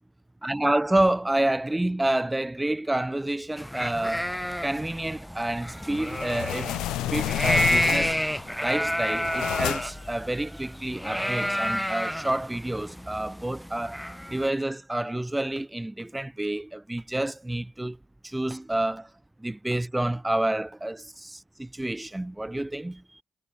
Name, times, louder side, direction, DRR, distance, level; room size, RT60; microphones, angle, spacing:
voice 1, 0.4-4.3 4.6-6.7 7.1-8.2 8.6-14.0 14.3-18.0 18.2-19.1 19.4-23.2, right 1 dB, 15° right, 2.8 m, -28 dB
sound 1, 3.6-14.5, equal, ahead, 6.6 m, -30 dB
sound 2, 5.9-8.4 8.9-10.1, left 16 dB, 80° left, 1.4 m, -30 dB
hypercardioid pair, 45°, 0 cm